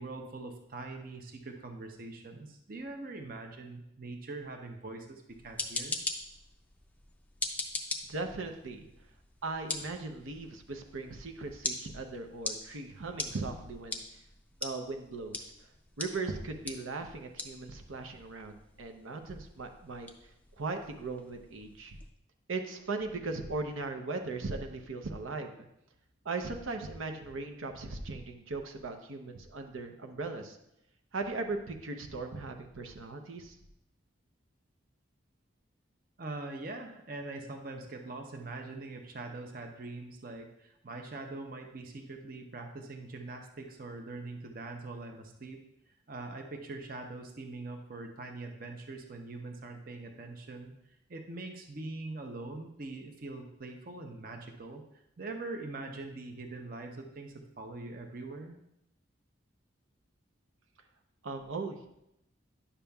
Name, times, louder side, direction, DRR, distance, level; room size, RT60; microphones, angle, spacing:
voice 1, 0.0-6.0 36.2-45.6 46.1-54.8 55.2-58.5, right 2 dB, 45° right, 4 dB, 0.6 m, -43 dB
sound 1, 5.3-22.1, left 2 dB, 10° left, 0.4 m, -42 dB
voice 2, 8.1-8.9 9.4-14.0 14.6-15.5 16.0-20.1 20.6-22.0 22.5-25.5 26.2-30.6 31.1-33.6 61.2-61.8, right 3 dB, 85° right, 5 dB, 0.7 m, -38 dB
10.0 x 6.9 x 2.3 m, 0.81 s
head